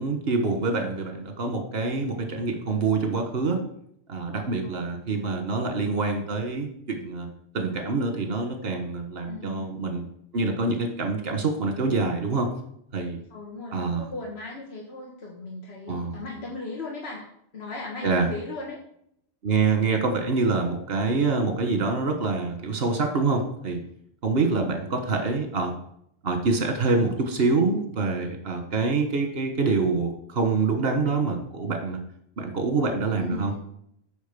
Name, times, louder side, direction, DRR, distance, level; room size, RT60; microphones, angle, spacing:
voice 1, 0.0-3.6 4.1-7.3 7.5-10.0 10.3-12.5 12.9-13.2 13.7-14.1 15.9-16.2 18.0-18.3 19.4-23.8 24.2-25.7 26.2-32.0 32.4-33.5, right 4 dB, 70° right, 4 dB, 1.6 m, -26 dB
voice 2, 9.3-9.8 13.3-17.3 17.5-18.8 24.4-24.7 25.1-25.4 33.2-33.6, left 3 dB, 85° left, -2 dB, 1.6 m, -37 dB
9.2 x 3.8 x 6.8 m, 0.70 s
omnidirectional pair, 1.1 m